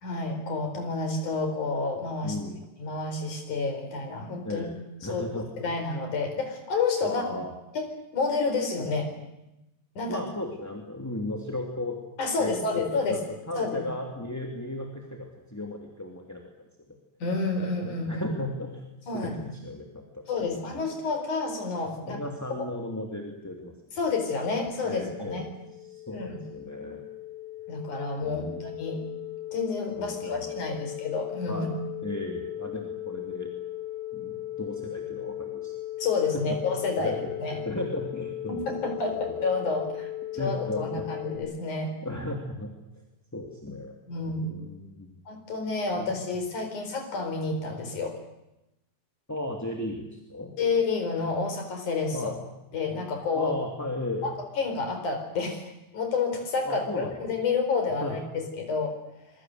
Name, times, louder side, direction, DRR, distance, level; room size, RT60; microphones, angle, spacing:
voice 1, 0.0-2.4 2.8-4.6 5.1-5.2 5.6-7.2 7.7-7.8 8.1-9.1 10.0-10.2 12.2-13.2 13.6-13.9 17.2-18.3 19.1-19.3 20.3-22.2 22.6-22.7 24.0-25.4 26.1-26.4 27.7-29.0 29.5-31.7 36.0-37.1 37.4-37.6 38.5-41.9 44.1-44.5 45.3-48.2 50.6-52.3 52.7-53.5 54.6-58.9, left 4 dB, 60° left, 5 dB, 5.8 m, -29 dB
voice 2, 2.2-2.6 4.4-4.7 5.0-5.7 7.0-7.5 10.1-12.0 12.4-13.2 13.5-16.7 18.1-18.8 19.1-20.9 21.9-23.7 24.8-25.5 25.9-27.0 28.2-28.6 29.9-30.8 31.5-31.8 32.0-33.5 34.1-35.7 36.3-36.6 37.0-39.5 40.3-41.1 42.0-43.0 43.3-44.0 44.4-45.1 49.3-50.5 52.1-52.4 53.3-54.3 56.6-57.2 58.0-58.2, left 1 dB, 5° left, 1 dB, 2.2 m, -35 dB
sound 1, 24.4-41.4, left 14 dB, 20° right, 6.1 m, -38 dB
26.5 x 22.5 x 8.0 m, 0.91 s
omnidirectional pair, 4.0 m